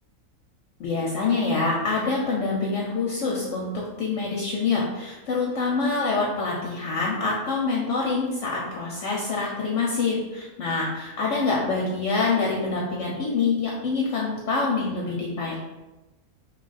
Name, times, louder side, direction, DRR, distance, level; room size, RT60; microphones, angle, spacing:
voice 1, 0.8-15.6, left 4 dB, 65° left, -3 dB, 0.8 m, -26 dB
2.8 x 2.3 x 3.9 m, 1.1 s
omnidirectional pair, 1.5 m